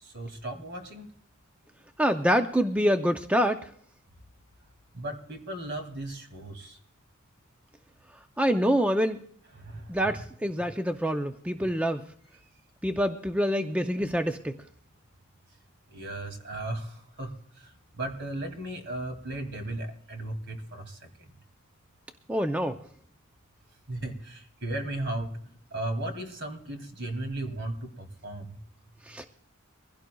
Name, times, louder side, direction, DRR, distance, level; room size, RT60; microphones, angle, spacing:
voice 1, 0.0-1.1 4.9-6.8 9.6-10.0 11.6-11.7 15.9-17.7 18.0-21.0 23.9-25.4 25.7-28.6, right 1 dB, 55° right, 6 dB, 2.4 m, -36 dB
voice 2, 2.0-3.7 8.4-9.2 9.9-12.1 12.8-14.6 22.3-22.8 29.1-29.2, equal, 5° right, 6 dB, 0.5 m, -26 dB
23.5 x 16.0 x 2.3 m, 0.63 s
head